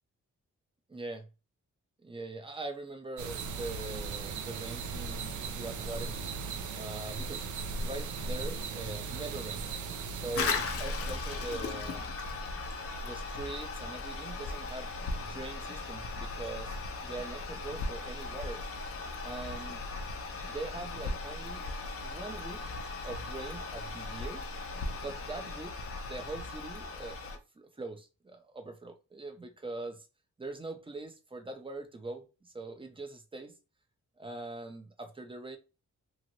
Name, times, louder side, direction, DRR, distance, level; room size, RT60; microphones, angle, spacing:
voice 1, 0.9-1.3 2.0-6.2 6.7-9.7 10.1-12.2 13.0-18.6 19.2-19.9 20.4-21.7 22.0-22.8 23.0-24.4 25.0-25.7 26.0-27.3 27.6-30.1 30.4-33.5 34.2-35.6, right 2 dB, 15° right, 0.7 m, -42 dB
sound 1, 3.2-10.4, right 4 dB, 75° right, 0.5 m, -37 dB
Toilet flush, 10.4-27.4, left 3 dB, 50° left, 0.6 m, -37 dB
2.9 x 2.5 x 2.9 m
cardioid pair, 85°, 30 cm